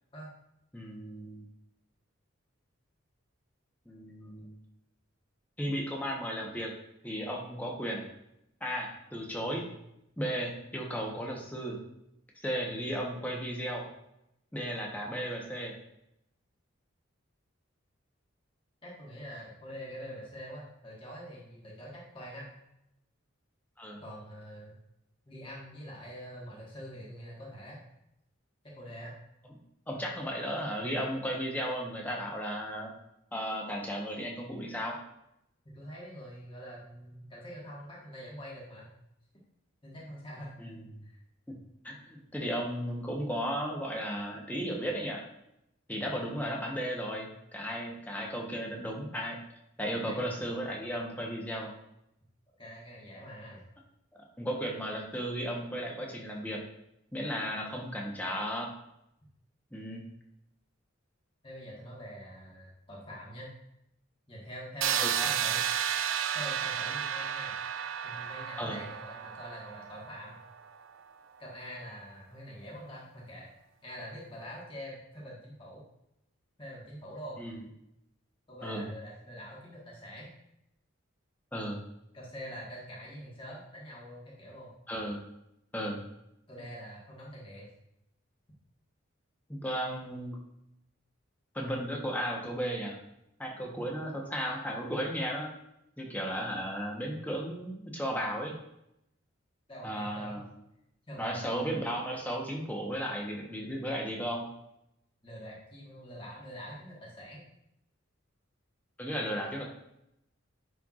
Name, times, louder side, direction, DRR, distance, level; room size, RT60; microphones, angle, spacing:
voice 1, 0.7-1.4 3.9-4.5 5.6-6.7 7.0-8.0 8.6-9.6 10.2-11.8 12.4-13.9 14.5-15.7 23.8-24.0 29.9-32.9 33.3-35.0 40.6-40.8 41.5-41.6 41.8-45.3 45.9-49.4 49.8-51.7 54.4-56.6 57.1-58.7 59.7-60.0 65.0-65.3 68.6-68.8 77.4-77.6 78.6-78.9 81.5-81.8 84.9-85.2 85.7-86.0 89.5-90.4 91.5-93.0 93.4-95.5 96.0-98.6 99.8-100.5 101.2-104.5 109.0-109.7, equal, 10° left, -1 dB, 1.0 m, -35 dB
voice 2, 18.8-22.5 24.0-24.7 25.3-27.8 28.6-29.1 35.6-38.9 39.8-40.5 41.0-41.2 50.0-50.4 52.6-53.6 61.4-63.5 64.3-65.7 66.3-67.6 68.0-70.4 71.4-73.5 73.8-75.8 76.6-77.4 78.5-80.3 82.1-84.7 86.5-87.7 97.2-97.5 99.7-100.4 101.1-101.8 105.2-107.4, equal, 25° left, -5 dB, 1.6 m, -45 dB
sound 1, 64.8-70.6, right 9 dB, 70° right, 0.4 m, -32 dB
10.0 x 4.5 x 2.5 m, 0.82 s
head